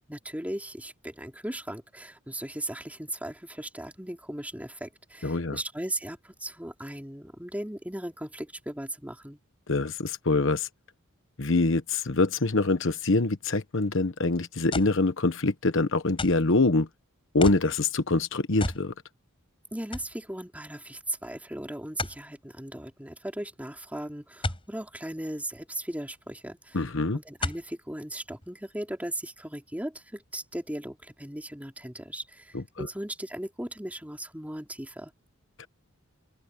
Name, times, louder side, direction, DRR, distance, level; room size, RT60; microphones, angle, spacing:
voice 1, 0.1-9.4 19.7-26.8 27.1-35.1, right 1 dB, 5° right, 3.3 m, -37 dB
voice 2, 5.2-5.6 9.7-10.7 11.4-16.9 17.3-18.9 26.7-27.2 32.5-32.9 35.6-35.7, left 3 dB, 65° left, 1.2 m, -25 dB
sound 1, 14.7-15.0 16.2-16.5 17.4-17.7 18.6-18.9 19.3-19.4 19.9-20.1 22.0-22.2 24.4-24.7 26.1-26.2 27.4-27.7 28.4-28.5, left 2 dB, 25° left, 5.6 m, -33 dB
open air
head